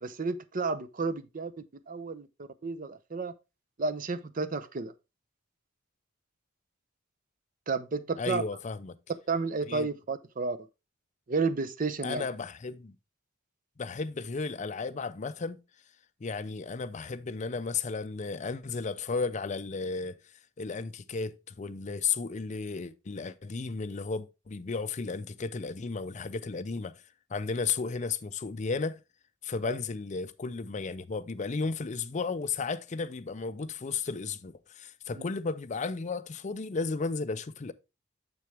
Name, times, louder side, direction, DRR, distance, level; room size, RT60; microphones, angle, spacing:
voice 1, 0.0-1.5 1.9-3.3 3.8-4.9 7.7-8.4 9.3-10.6 11.3-12.2 29.6-29.8 35.2-35.3, right 4 dB, 45° right, 0.6 m, -32 dB
voice 2, 8.2-9.0 9.6-9.9 12.0-13.0 13.8-15.6 16.2-20.2 20.6-26.9 27.3-29.0 29.4-37.7, left 4 dB, 40° left, 0.5 m, -34 dB
6.8 x 6.3 x 3.3 m
head